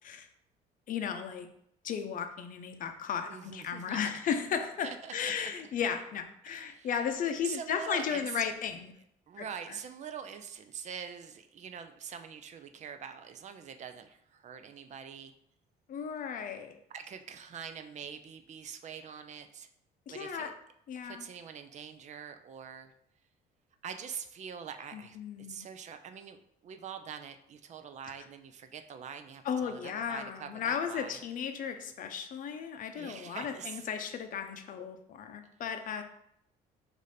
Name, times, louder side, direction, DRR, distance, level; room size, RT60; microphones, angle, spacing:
voice 1, 0.9-1.5 1.8-8.9 9.4-9.5 15.9-16.8 20.1-20.5 20.9-21.3 24.9-25.7 29.4-36.0, left 7 dB, 55° left, 7 dB, 0.6 m, -35 dB
voice 2, 3.3-4.1 4.8-5.3 6.5-7.1 7.4-8.5 9.3-15.3 16.9-19.7 20.1-20.5 21.0-22.9 23.8-31.2 33.0-33.9 35.5-35.6, right 7 dB, 45° right, 8 dB, 0.4 m, -44 dB
4.9 x 2.6 x 4.1 m, 0.72 s
cardioid pair, 110°, 17 cm